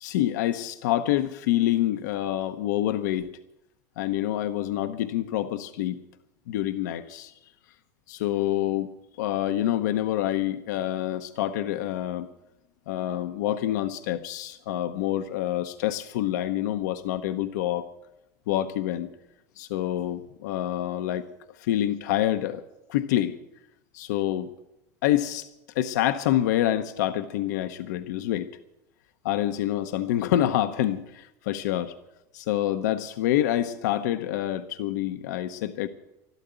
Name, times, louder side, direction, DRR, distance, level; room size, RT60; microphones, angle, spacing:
voice 1, 0.0-3.3 4.0-6.0 6.5-7.3 8.1-8.9 9.2-12.3 12.9-17.9 18.5-19.1 19.6-21.3 21.6-22.6 22.9-23.4 23.9-24.5 25.0-25.5 25.7-28.5 29.2-31.9 32.3-35.9, left 12 dB, 85° left, 9 dB, 0.8 m, -27 dB
12.5 x 12.5 x 8.0 m, 0.89 s
supercardioid pair, 135°, 9 cm